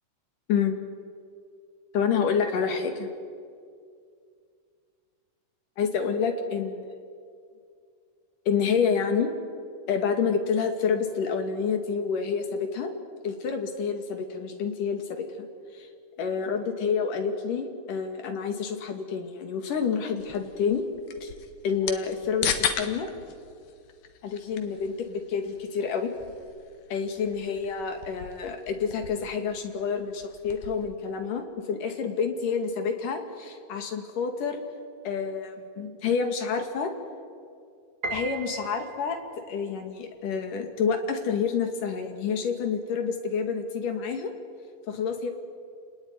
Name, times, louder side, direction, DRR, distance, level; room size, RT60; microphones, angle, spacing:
voice 1, 1.9-2.9 5.8-6.9 8.5-9.3 9.9-12.9 13.2-15.5 15.7-15.9 16.2-20.8 21.2-21.3 21.6-23.1 24.2-26.1 26.9-34.6 35.1-36.9 38.1-39.2 39.5-44.3 44.9-45.3, left 6 dB, 70° left, 5 dB, 3.9 m, -28 dB
sound 1, 20.2-30.9, left 8 dB, 85° left, 3.4 m, -37 dB
Piano, 38.0-39.3, right 3 dB, 30° right, 2.6 m, -35 dB
30.0 x 19.5 x 9.8 m, 2.2 s
omnidirectional pair, 3.8 m